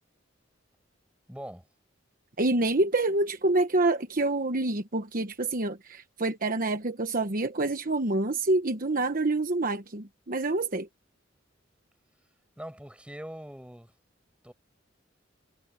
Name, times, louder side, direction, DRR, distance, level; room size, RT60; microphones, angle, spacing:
voice 1, 1.3-1.6 12.6-13.9 14.4-14.5, equal, 5° right, 7.1 m, -42 dB
voice 2, 2.4-10.9, right 2 dB, 45° right, 1.2 m, -27 dB
head